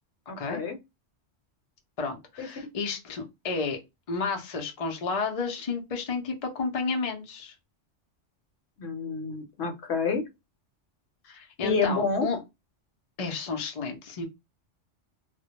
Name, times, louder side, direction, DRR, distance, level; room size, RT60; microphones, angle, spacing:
voice 1, 0.3-0.8 2.4-2.5 8.8-10.2 11.6-12.3, left 4 dB, 65° left, 0.9 m, -28 dB
voice 2, 2.0-3.8 4.1-7.5 11.2-12.4 13.2-14.3, left 4 dB, 45° left, 0.5 m, -31 dB
2.2 x 2.1 x 2.8 m
omnidirectional pair, 1.3 m